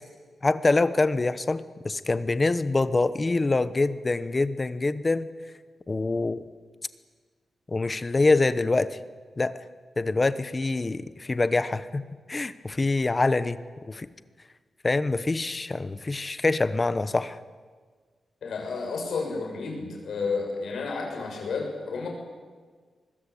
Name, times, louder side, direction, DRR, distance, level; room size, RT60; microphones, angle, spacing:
voice 1, 0.4-5.3 5.9-6.4 7.7-9.0 9.4-9.6 10.0-12.0 12.3-13.6 13.9-14.1 14.8-17.4, left 3 dB, 20° left, 14 dB, 0.9 m, -25 dB
voice 2, 18.4-22.1, left 4 dB, 65° left, 1 dB, 7.3 m, -31 dB
24.5 x 21.0 x 8.4 m, 1.5 s
wide cardioid pair, 180°, 0 cm